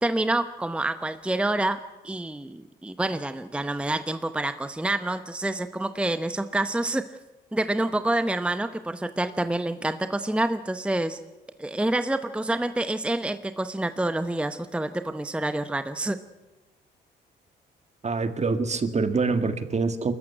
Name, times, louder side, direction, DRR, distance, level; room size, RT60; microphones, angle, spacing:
voice 1, 0.0-7.0 7.5-11.2 11.6-16.2, right 1 dB, 5° right, 10 dB, 0.8 m, -27 dB
voice 2, 18.0-20.1, right 4 dB, 35° right, 9 dB, 1.9 m, -25 dB
23.0 x 14.0 x 9.8 m, 1.2 s
cardioid pair, 90°, 20 cm